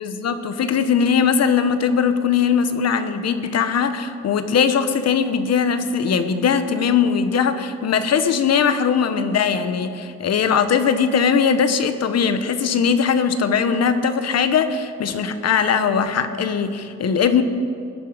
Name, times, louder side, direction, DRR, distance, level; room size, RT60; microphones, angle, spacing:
voice 1, 0.0-17.4, left 6 dB, 55° left, 9 dB, 1.1 m, -20 dB
20.5 x 10.0 x 5.1 m, 2.4 s
cardioid pair, 90°, 30 cm